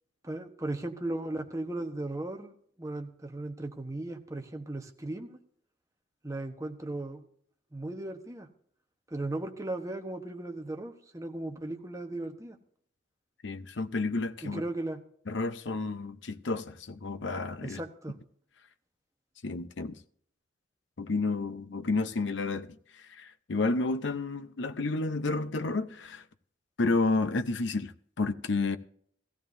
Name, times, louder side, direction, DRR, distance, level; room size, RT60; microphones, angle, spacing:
voice 1, 0.2-5.4 6.2-7.2 7.7-8.5 9.1-12.6 14.4-15.0 17.6-18.2, right 2 dB, 15° right, 1.1 m, -36 dB
voice 2, 13.4-14.6 15.3-17.8 19.4-20.0 21.0-26.2 26.8-28.8, left 3 dB, 70° left, 0.7 m, -31 dB
17.0 x 14.5 x 2.7 m
head